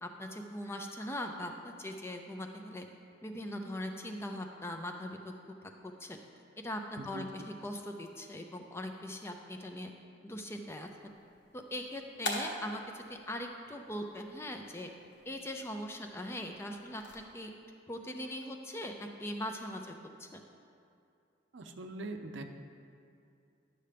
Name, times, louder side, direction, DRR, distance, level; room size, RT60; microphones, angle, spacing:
voice 1, 0.0-2.8 3.2-5.6 5.8-6.2 6.6-9.9 10.2-10.9 11.5-14.9 15.3-17.5 17.9-20.4, left 1 dB, 15° left, 4 dB, 0.4 m, -41 dB
sound 1, 10.8-17.2, left 1 dB, 65° left, 1.1 m, -45 dB
voice 2, 21.5-22.4, right 2 dB, 70° right, 6 dB, 0.6 m, -42 dB
11.0 x 6.6 x 3.4 m, 2.6 s
head